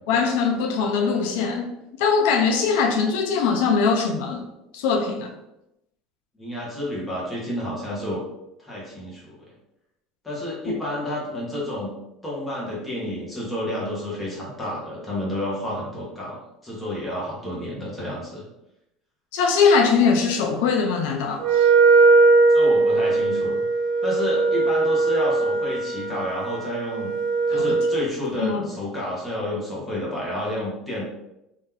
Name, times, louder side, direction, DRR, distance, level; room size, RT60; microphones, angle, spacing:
voice 1, 0.1-1.7 2.0-4.4 4.7-5.3 19.3-21.7 27.5-27.7 28.4-28.7, left 5 dB, 75° left, 0.5 m, -21 dB
voice 2, 6.3-8.2 8.6-9.4 10.2-11.9 12.2-18.4 22.5-23.6 24.0-27.1 27.5-31.0, left 1 dB, 5° left, 1.1 m, -30 dB
Wind instrument woodwind instrument, 21.4-28.1, right 3 dB, 50° right, 0.3 m, -19 dB
3.0 x 2.7 x 3.7 m
cardioid pair, 170°, 0 cm